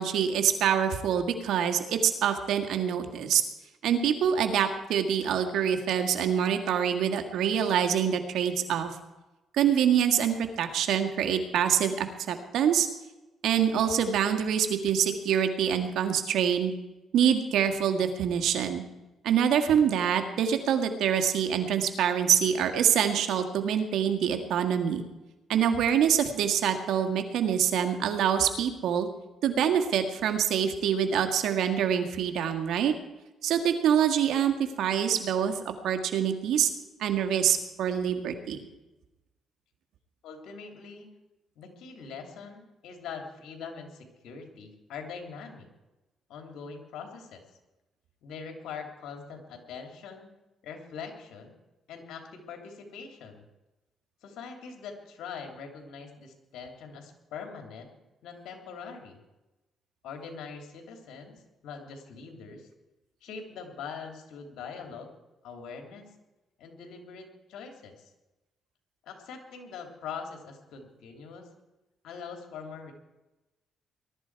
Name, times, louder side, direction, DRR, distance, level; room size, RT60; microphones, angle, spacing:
voice 1, 0.0-3.4 3.8-8.9 9.5-12.9 13.4-16.7 17.1-18.8 19.2-25.0 25.5-29.1 29.4-32.9 33.4-35.6 35.8-36.7 37.0-38.6, right 8 dB, 80° right, 6 dB, 1.8 m, -25 dB
voice 2, 40.2-41.1 41.6-45.7 46.3-47.4 48.2-50.3 50.6-51.5 51.9-53.4 54.2-58.0 58.2-59.2 60.0-62.7 63.2-65.1 65.4-66.1 66.6-68.1 69.0-71.5 72.0-72.9, left 6 dB, 80° left, 4 dB, 2.9 m, -43 dB
20.0 x 12.5 x 4.7 m, 1.0 s
cardioid pair, 90°, 0 cm